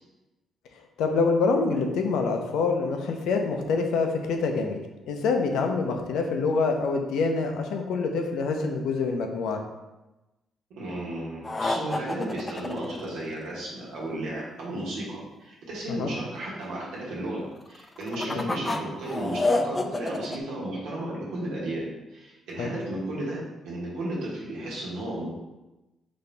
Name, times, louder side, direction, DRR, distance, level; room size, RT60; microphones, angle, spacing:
voice 1, 1.0-4.8 5.1-9.6 15.9-16.1 18.2-18.4 22.6-22.7, left 4 dB, 85° left, 4 dB, 0.5 m, -26 dB
voice 2, 10.7-21.8 22.1-25.3, right 1 dB, 90° right, -5 dB, 1.2 m, -34 dB
sound 1, 11.4-13.7 17.8-20.4, left 2 dB, 25° left, 0.3 m, -28 dB
4.2 x 2.7 x 3.3 m, 1.0 s
cardioid pair, 90°, 0 cm